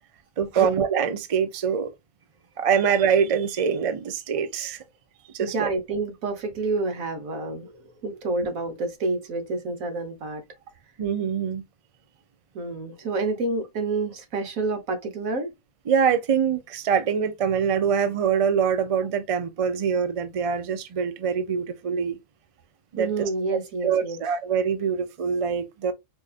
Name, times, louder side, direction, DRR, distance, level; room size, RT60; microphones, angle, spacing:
voice 1, 0.4-1.9 2.6-4.8 5.3-5.7 8.1-8.2 11.0-11.6 15.9-22.2 22.9-23.3 23.8-25.9, right 7 dB, 60° right, 0.3 m, -24 dB
voice 2, 5.4-10.4 12.5-15.5 23.0-24.2, right 3 dB, 80° right, 1.4 m, -28 dB
4.7 x 2.5 x 2.4 m
omnidirectional pair, 1.4 m